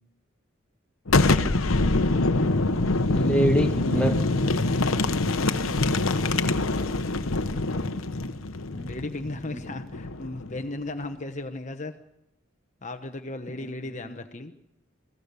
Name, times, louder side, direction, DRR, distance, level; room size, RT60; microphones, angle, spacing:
Boom, 1.1-10.6, left 2 dB, 85° left, 1.0 m, -25 dB
voice 1, 3.1-4.2 8.7-8.9 9.3-9.6 9.9-10.0 13.5-13.9, right 1 dB, 5° left, 3 dB, 1.6 m, -27 dB
voice 2, 5.5-6.1 8.9-11.9 12.8-14.5, left 2 dB, 35° left, 7 dB, 1.0 m, -36 dB
27.5 x 18.0 x 6.9 m, 0.88 s
head